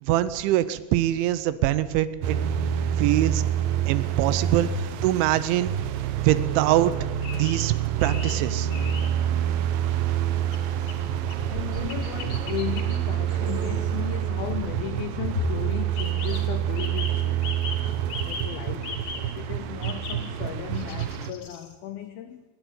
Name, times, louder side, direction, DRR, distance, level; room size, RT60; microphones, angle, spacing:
voice 1, 0.0-2.4 3.0-3.4 3.9-5.7 6.2-6.9 7.4-7.7 8.0-9.0, right 14 dB, 90° right, 15 dB, 3.3 m, -24 dB
sound 1, 2.2-21.3, right 9 dB, 70° right, 2.3 m, -27 dB
sound 2, 7.2-7.6 8.0-8.4 8.7-9.1 10.5-11.4 11.7-13.0 13.3-14.7 15.3-15.4 15.9-18.5 18.8-19.2 19.8-20.2 20.7-21.7, left 4 dB, 40° left, 3.9 m, -38 dB
voice 2, 11.5-17.5 18.2-22.4, left 10 dB, 70° left, 8 dB, 2.4 m, -35 dB
23.0 x 15.0 x 9.2 m, 1.2 s
omnidirectional pair, 5.3 m